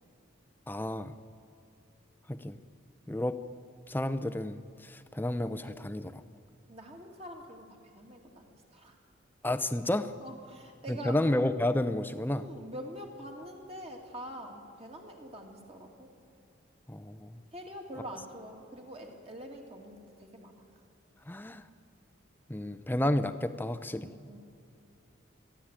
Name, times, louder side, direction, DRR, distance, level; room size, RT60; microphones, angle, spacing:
voice 1, 0.7-1.1 2.3-2.6 3.1-3.4 3.9-6.2 9.4-10.1 10.9-12.5 16.9-17.4 21.3-21.7 22.5-24.1, left 1 dB, 10° left, 11 dB, 0.6 m, -31 dB
voice 2, 6.7-9.0 10.2-11.2 12.3-16.1 17.5-20.7 23.9-24.4, equal, 30° right, 1 dB, 2.5 m, -45 dB
29.5 x 11.5 x 9.0 m, 2.5 s
head